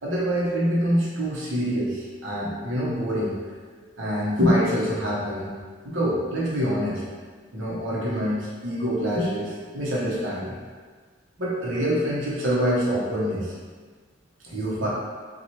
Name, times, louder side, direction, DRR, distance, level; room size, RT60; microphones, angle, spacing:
voice 1, 0.0-3.3 3.9-5.5 5.8-7.0 7.5-10.6 11.4-13.5 14.4-14.9, equal, 75° right, -6 dB, 0.8 m, -25 dB
4.1 x 2.3 x 3.0 m, 1.5 s
head